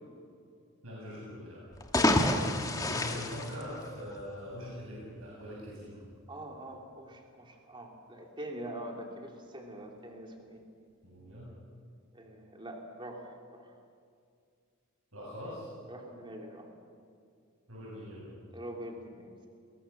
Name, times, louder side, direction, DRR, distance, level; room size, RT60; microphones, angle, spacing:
voice 1, 0.8-1.6 2.6-6.0 11.0-11.5 15.1-15.7 17.7-18.3, equal, 70° right, -5 dB, 7.8 m, -42 dB
sound 1, 1.7-4.3, left 1 dB, 15° left, 1.6 m, -29 dB
voice 2, 6.3-10.6 12.1-13.8 15.9-16.7 18.5-19.5, right 1 dB, 20° right, 1 dB, 2.7 m, -44 dB
29.5 x 22.5 x 7.1 m, 2.3 s
head